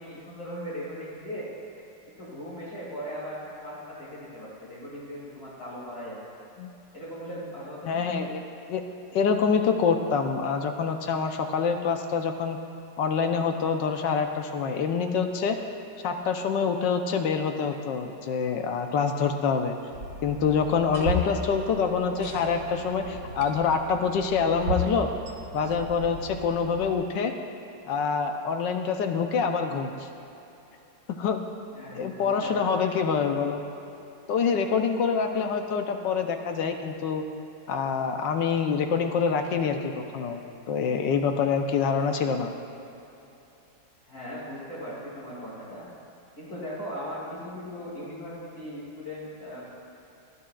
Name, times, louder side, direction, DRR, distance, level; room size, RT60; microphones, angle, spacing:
voice 1, 0.0-1.5 2.1-6.2 6.9-8.1 31.7-32.7 44.0-45.9 46.4-49.7, equal, 55° left, -8 dB, 3.2 m, -38 dB
voice 2, 7.8-8.4 8.7-8.8 9.1-12.6 13.0-15.5 16.0-19.8 20.2-25.1 25.5-27.3 27.9-30.1 31.1-31.4 32.0-33.6 34.3-37.2 37.7-42.5, left 6 dB, 85° left, 5 dB, 1.5 m, -26 dB
sound 1, 19.9-26.9, equal, 60° right, 1.9 m, -35 dB
19.0 x 12.5 x 2.4 m, 2.9 s
omnidirectional pair, 1.9 m